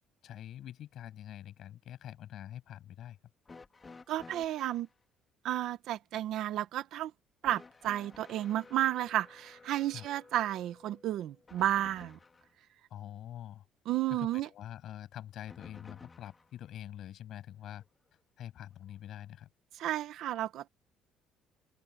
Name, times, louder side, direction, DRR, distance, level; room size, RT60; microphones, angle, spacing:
voice 1, 0.2-3.2 9.9-10.1 12.9-13.6 14.1-17.8 18.4-19.5, left 11 dB, 55° left, 7.9 m, -45 dB
sound 1, 3.4-4.9 7.4-12.5 15.5-16.5 17.8-17.9 18.9-19.0, left 4 dB, 20° left, 3.2 m, -54 dB
voice 2, 4.1-4.9 5.4-7.1 7.4-12.2 13.8-14.5 19.8-20.7, right 13 dB, 65° right, 1.4 m, -32 dB
open air
cardioid pair, 140°, 0 cm